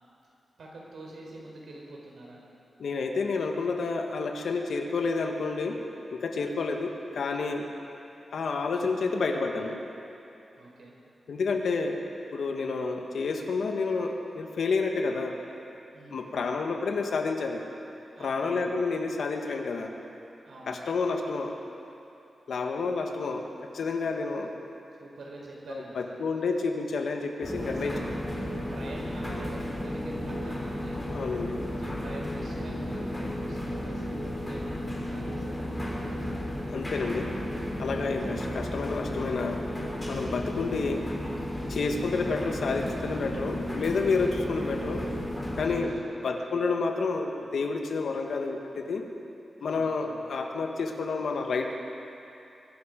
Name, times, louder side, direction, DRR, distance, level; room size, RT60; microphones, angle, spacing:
voice 1, 0.6-2.4 6.4-6.8 10.6-11.0 15.9-16.5 18.1-18.8 20.4-20.8 25.0-26.2 27.7-28.1 28.7-31.0 31.8-36.7 45.9-46.1 49.6-50.3, right 2 dB, 75° right, -2 dB, 4.1 m, -46 dB
voice 2, 2.8-5.8 6.1-7.7 8.3-9.8 11.3-12.0 12.3-15.4 16.1-17.6 18.2-19.9 20.7-21.6 22.5-23.4 23.7-24.5 25.7-27.9 31.1-31.6 36.7-37.3 37.8-39.6 40.0-41.0 41.7-45.0 45.6-49.0 49.6-51.8, left 4 dB, 80° left, 3 dB, 1.5 m, -29 dB
sound 1, 27.4-45.8, left 1 dB, 15° left, 3.3 m, -33 dB
22.5 x 12.0 x 5.3 m, 2.8 s
wide cardioid pair, 125°, 0 cm